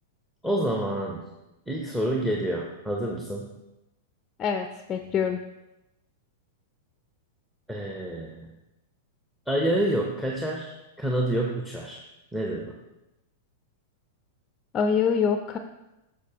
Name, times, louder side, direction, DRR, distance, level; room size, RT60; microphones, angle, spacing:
voice 1, 0.4-1.2 1.7-3.5 7.7-8.5 9.5-10.7 11.0-12.0 12.3-12.7, right 1 dB, 5° right, 0 dB, 0.9 m, -28 dB
voice 2, 4.4-5.4 14.7-15.6, left 6 dB, 30° left, 6 dB, 0.5 m, -25 dB
8.1 x 6.6 x 2.9 m, 0.95 s
hypercardioid pair, 115°, 0 cm